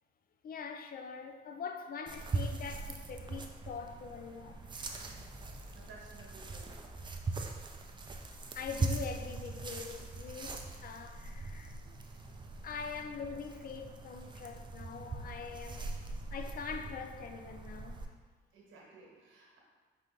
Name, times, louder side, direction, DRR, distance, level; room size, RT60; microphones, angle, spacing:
voice 1, 0.4-4.6 8.6-11.9 12.6-15.9 16.3-18.0, left 6 dB, 50° left, 0.4 m, -43 dB
sound 1, 2.1-18.1, right 3 dB, 25° right, 0.4 m, -41 dB
voice 2, 5.7-6.7 18.5-19.6, right 3 dB, 85° right, 1.3 m, -55 dB
4.9 x 2.6 x 3.7 m
cardioid pair, 90°, 20 cm